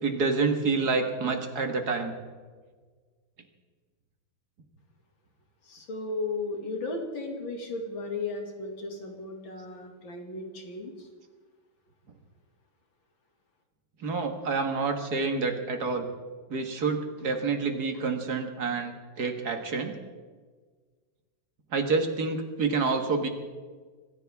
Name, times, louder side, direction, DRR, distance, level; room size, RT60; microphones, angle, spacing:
voice 1, 0.0-2.2 14.0-16.1 16.5-20.0 21.7-23.3, right 4 dB, 55° right, 5 dB, 2.1 m, -28 dB
voice 2, 5.6-11.1, left 3 dB, 85° left, 2 dB, 3.1 m, -35 dB
25.0 x 15.0 x 3.6 m, 1.5 s
omnidirectional pair, 2.1 m